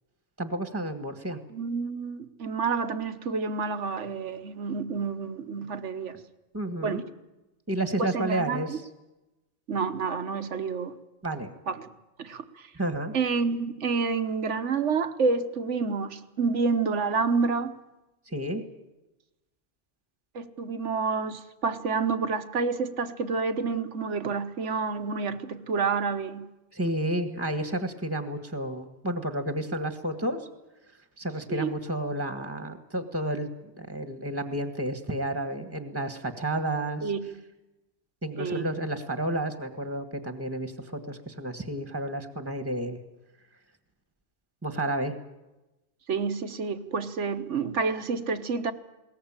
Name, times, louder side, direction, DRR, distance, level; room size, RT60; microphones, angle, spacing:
voice 1, 0.4-1.4 6.5-7.0 7.7-8.8 11.2-11.5 12.7-13.1 18.3-18.6 26.7-30.5 31.2-33.5 33.8-37.1 38.2-43.0 44.6-45.1, right 1 dB, 10° right, 1.5 m, -31 dB
voice 2, 1.5-6.1 6.8-7.0 8.0-8.8 9.7-11.0 11.7-11.9 12.2-12.7 13.1-17.7 20.3-26.5 31.5-31.7 37.0-37.4 38.4-38.7 46.1-48.7, right 4 dB, 80° right, 1.5 m, -29 dB
21.0 x 18.0 x 8.9 m
omnidirectional pair, 1.2 m